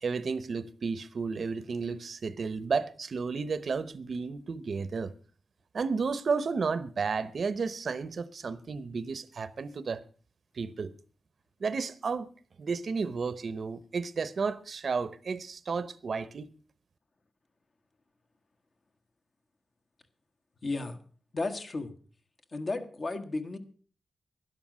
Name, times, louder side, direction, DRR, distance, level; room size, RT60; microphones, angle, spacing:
voice 1, 0.0-5.1 5.7-10.0 10.5-10.9 11.6-12.3 12.6-16.5, right 5 dB, 60° right, 0.8 m, -32 dB
voice 2, 20.6-21.0 21.3-21.9 22.5-23.6, left 3 dB, 45° left, 1.4 m, -33 dB
11.5 x 11.5 x 6.2 m
wide cardioid pair, 120°, 0 cm